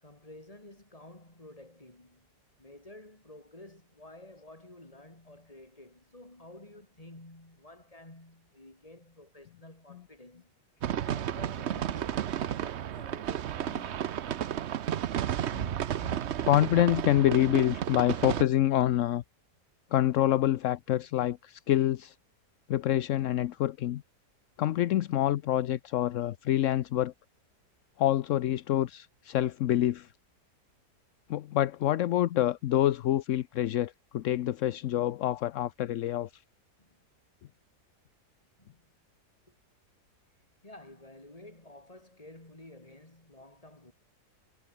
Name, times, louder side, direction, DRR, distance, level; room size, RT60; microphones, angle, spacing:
voice 1, 0.0-2.3 2.6-10.5 11.0-14.0 36.8-37.1 38.6-38.9 39.5-39.6 40.6-43.9, left 1 dB, 20° left, 3.9 m, -51 dB
sound 1, 10.8-18.4, right 10 dB, 55° right, 0.8 m, -32 dB
voice 2, 15.5-19.2 19.9-22.1 22.7-24.0 24.6-27.1 28.0-30.1 31.3-36.3, left 13 dB, 65° left, 0.8 m, -27 dB
omnidirectional pair, 1.7 m